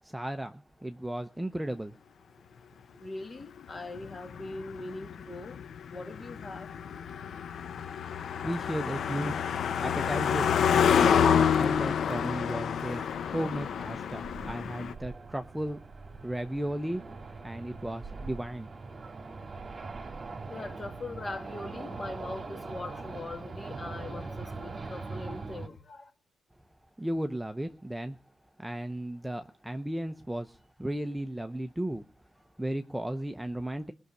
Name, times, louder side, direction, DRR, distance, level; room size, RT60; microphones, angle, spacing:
voice 1, 0.0-2.0 8.1-9.4 9.8-15.8 16.2-17.0 17.4-18.7 27.0-28.2 28.6-32.0 32.4-33.9, right 1 dB, 5° right, 0.6 m, -35 dB
voice 2, 3.0-5.6 5.9-6.7 20.5-26.1, left 2 dB, 30° left, 1.8 m, -41 dB
Car passing by, 3.8-14.9, left 7 dB, 60° left, 0.6 m, -28 dB
sound 1, 6.7-25.7, right 3 dB, 35° right, 1.7 m, -43 dB
18.5 x 6.5 x 8.1 m
cardioid pair, 90°, 0 cm